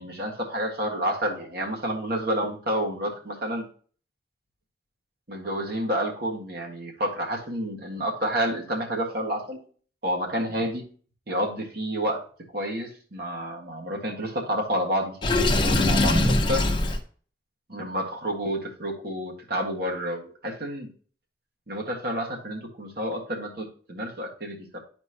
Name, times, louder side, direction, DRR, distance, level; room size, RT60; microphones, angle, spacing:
voice 1, 0.0-3.7 5.3-9.6 10.0-10.8 11.3-12.2 12.5-16.6 17.7-20.9 21.7-24.8, equal, 60° right, 0 dB, 1.7 m, -29 dB
Water / Sink (filling or washing), 15.2-17.0, left 2 dB, 25° left, 0.9 m, -21 dB
11.0 x 4.4 x 2.9 m, 0.43 s
head